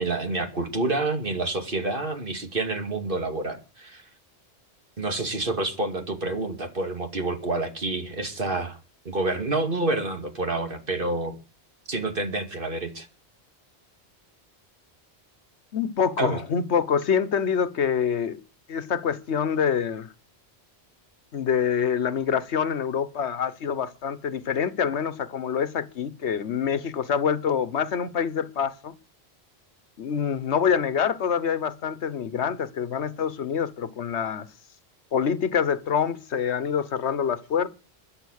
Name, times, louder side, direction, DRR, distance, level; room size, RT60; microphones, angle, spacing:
voice 1, 0.0-4.0 5.0-8.8 9.0-11.4 11.9-13.1 16.2-16.4, right 2 dB, 55° right, 2.5 m, -28 dB
voice 2, 15.7-18.4 18.7-20.1 21.3-28.9 30.0-34.5 35.1-37.7, left 7 dB, 90° left, 1.3 m, -26 dB
21.5 x 7.9 x 6.4 m
omnidirectional pair, 1.1 m